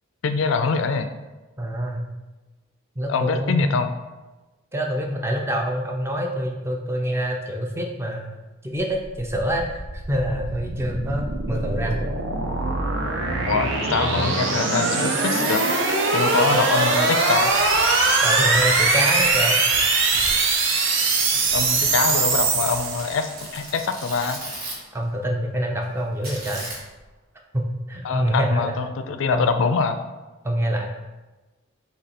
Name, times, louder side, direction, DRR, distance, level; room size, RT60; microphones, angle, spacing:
voice 1, 0.2-1.1 3.1-3.9 13.5-15.6 16.1-17.5 21.5-24.4 28.0-30.0, left 5 dB, 60° left, 9 dB, 0.3 m, -24 dB
voice 2, 1.6-2.0 3.0-3.7 4.7-8.2 8.6-12.0 18.2-19.6 24.9-26.7 27.5-28.8 29.3-29.6 30.4-30.9, equal, 10° right, 1 dB, 0.4 m, -26 dB
sound 1, 9.0-23.4, right 3 dB, 60° right, 0.5 m, -22 dB
sound 2, 15.3-16.0 16.7-16.8 17.3-17.4 17.8-18.5 18.9-19.0 19.8-19.9 20.7-21.4 21.9-22.0, right 2 dB, 85° right, 1.3 m, -38 dB
Tearing, 17.4-19.4 19.7-20.5 21.5-25.0 26.2-27.0, right 1 dB, 45° right, 1.0 m, -37 dB
4.1 x 2.8 x 4.1 m, 1.2 s
head